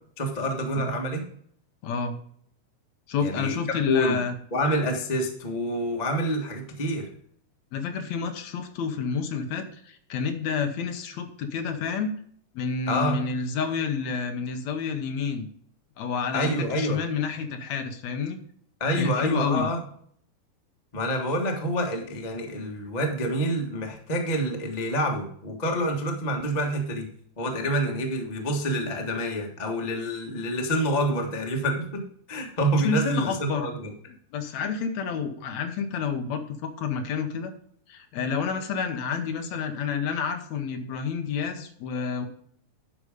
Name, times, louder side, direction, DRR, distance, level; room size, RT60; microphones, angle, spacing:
voice 1, 0.2-1.2 3.2-4.2 4.5-7.1 12.9-13.2 16.3-17.0 18.8-19.8 20.9-27.1 27.4-33.9, equal, 40° left, 2 dB, 0.5 m, -27 dB
voice 2, 1.8-2.2 3.1-4.4 7.7-12.1 12.6-15.5 16.0-18.4 19.0-19.7 32.8-33.7 34.3-37.5 37.9-42.3, left 5 dB, 70° left, 7 dB, 1.9 m, -29 dB
11.5 x 4.9 x 5.0 m, 0.62 s
omnidirectional pair, 3.7 m